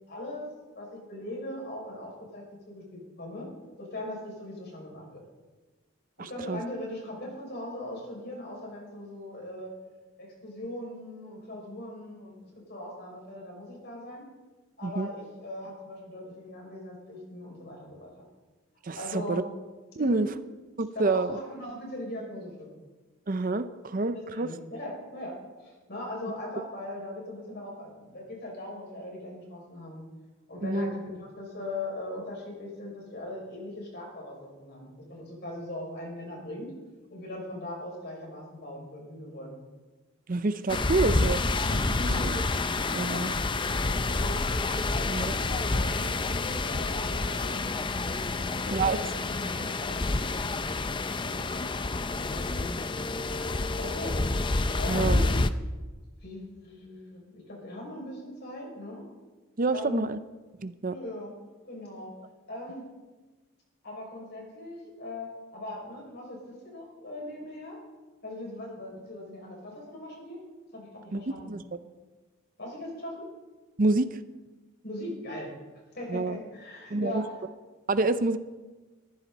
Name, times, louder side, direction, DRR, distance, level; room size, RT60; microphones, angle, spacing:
voice 1, 0.1-3.5 3.8-5.2 6.2-9.7 10.2-14.3 14.8-18.2 19.0-19.5 20.0-20.3 20.9-22.7 24.1-30.0 30.5-36.7 37.1-39.6 41.9-42.3 43.0-43.3 43.6-44.4 44.9-47.8 48.3-50.3 51.2-51.5 52.3-52.8 53.8-54.2 54.8-55.3 56.2-59.0 59.7-60.1 60.9-61.3 61.6-62.1 62.5-62.8 63.8-67.8 68.2-70.4 70.7-71.6 72.6-73.2 74.8-75.5 75.9-77.4, left 1 dB, 50° left, -1 dB, 6.0 m, -40 dB
voice 2, 6.2-6.6 14.8-15.1 18.8-19.4 20.0-20.3 20.8-21.4 23.3-24.5 30.6-30.9 40.3-41.4 41.7-42.4 42.9-43.3 45.1-45.3 48.7-49.0 54.9-55.2 59.6-60.2 60.6-60.9 71.1-71.6 73.8-74.2 76.1-76.4 76.9-77.2 77.9-78.4, right 3 dB, 40° right, 12 dB, 0.6 m, -28 dB
sound 1, 40.7-55.5, left 3 dB, 25° left, 0.5 m, -28 dB
21.0 x 14.5 x 4.1 m, 1.3 s
head